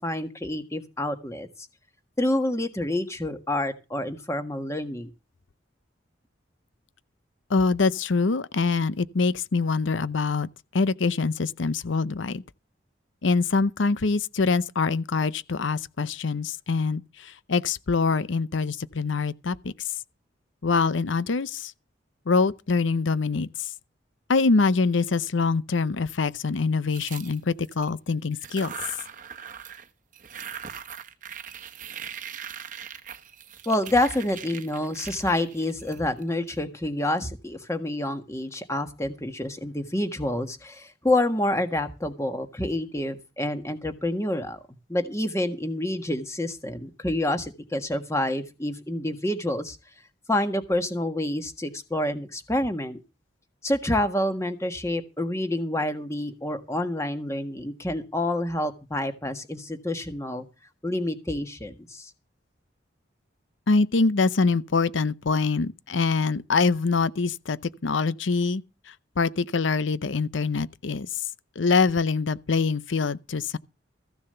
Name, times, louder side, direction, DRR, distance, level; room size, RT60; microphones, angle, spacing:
voice 1, 0.0-1.7 2.2-5.1 33.6-44.6 44.9-49.8 50.3-53.0 53.6-60.5 60.8-62.1, left 1 dB, 15° left, 1.5 m, -28 dB
voice 2, 7.5-10.5 10.7-12.4 13.2-19.7 20.6-21.7 22.3-23.5 24.3-28.7 63.7-67.6 67.8-68.6 69.2-71.1 71.6-73.6, left 4 dB, 75° left, 0.7 m, -24 dB
sound 1, 26.9-27.9 28.3-29.9 30.1-36.5, right 8 dB, 40° right, 1.1 m, -40 dB
15.0 x 7.0 x 6.8 m
head